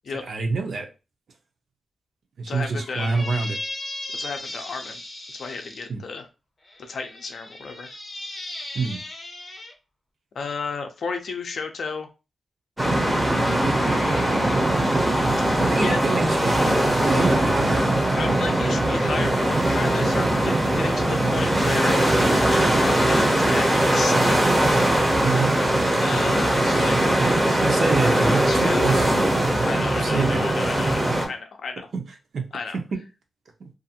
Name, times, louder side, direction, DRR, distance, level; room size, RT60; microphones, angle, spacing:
voice 1, 0.3-0.9 2.4-3.6 5.9-6.0 8.7-9.0 15.6-17.8 25.2-25.6 27.6-29.3 29.8-30.4 31.9-32.0 32.3-32.5 33.6-33.7, right 4 dB, 55° right, 4 dB, 0.6 m, -27 dB
voice 2, 2.5-3.1 4.1-5.0 5.3-6.3 6.8-7.9 10.3-12.1 13.7-15.0 15.6-16.0 18.2-22.1 22.6-24.6 26.0-27.0 27.3-27.7 27.9-29.1 29.6-31.9 32.5-32.8, left 4 dB, 60° left, 6 dB, 0.5 m, -33 dB
Squeak, 2.8-5.8 6.7-9.7, left 2 dB, 25° left, 0.7 m, -36 dB
sound 1, 12.8-31.3, right 1 dB, 15° right, 0.6 m, -21 dB
2.5 x 2.4 x 2.7 m, 0.30 s
wide cardioid pair, 165°, 0 cm